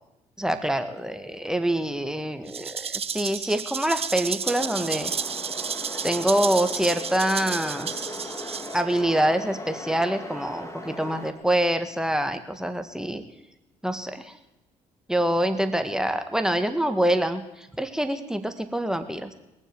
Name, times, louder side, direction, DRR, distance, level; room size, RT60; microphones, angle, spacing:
voice 1, 0.4-5.1 6.0-8.3 8.7-13.2 13.8-14.4 15.1-19.3, right 1 dB, 5° right, 8 dB, 1.8 m, -26 dB
Rattle (instrument), 2.5-9.0, right 6 dB, 40° right, 0.7 m, -32 dB
sound 1, 4.4-11.3, left 1 dB, 15° left, 2.6 m, -38 dB
21.5 x 7.3 x 7.8 m, 0.93 s
hypercardioid pair, 50°, 16 cm